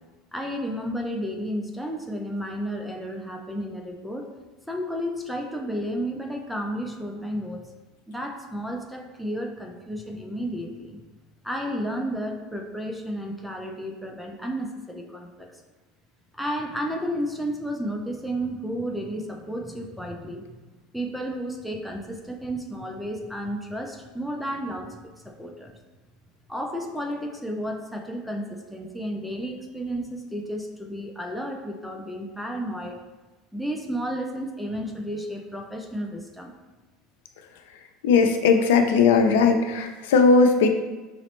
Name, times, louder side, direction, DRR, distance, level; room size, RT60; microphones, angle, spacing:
voice 1, 0.3-4.3 4.7-7.7 8.1-11.0 11.4-15.5 16.3-20.6 20.9-24.9 25.2-25.7 26.5-33.0 33.5-36.5, equal, ahead, 1 dB, 0.3 m, -32 dB
voice 2, 38.0-40.7, left 4 dB, 90° left, 6 dB, 0.4 m, -18 dB
5.0 x 2.0 x 2.9 m, 1.2 s
supercardioid pair, 140°, 0 cm